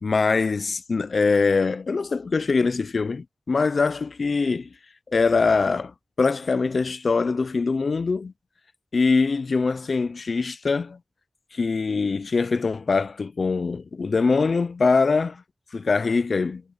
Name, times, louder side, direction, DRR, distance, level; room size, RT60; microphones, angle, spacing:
voice 1, 0.0-4.7 5.1-8.3 8.9-11.0 11.5-15.4 15.7-16.6, left 4 dB, 70° left, 0.5 m, -23 dB
wide cardioid pair, 75°, 0 cm